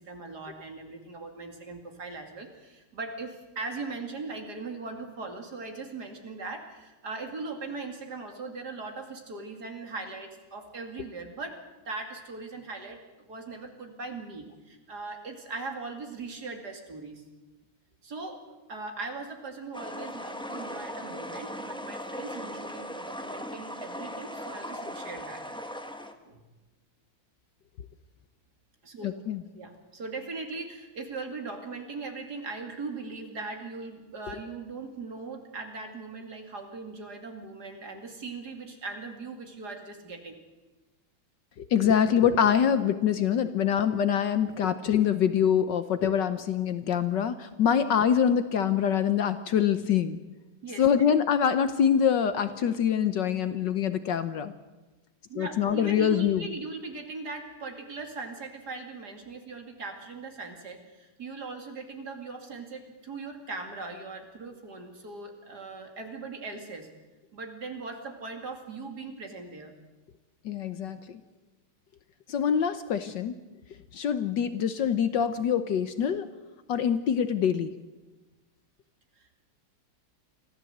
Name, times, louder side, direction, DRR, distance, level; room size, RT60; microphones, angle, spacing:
voice 1, 0.0-11.6 11.8-17.2 18.0-18.4 18.7-25.4 26.2-26.4 28.8-29.2 29.5-40.4 50.6-50.8 55.3-66.9 67.3-69.7 79.1-79.4, right 3 dB, 50° right, 4 dB, 3.0 m, -39 dB
sound 1, 19.7-26.1, equal, 5° left, 0.8 m, -38 dB
voice 2, 29.0-29.4 41.6-50.2 50.8-54.5 55.4-56.4 70.4-71.2 72.3-73.4 73.9-76.3 76.7-77.7, left 8 dB, 65° left, 11 dB, 1.4 m, -25 dB
25.0 x 15.0 x 8.0 m, 1.2 s
omnidirectional pair, 2.3 m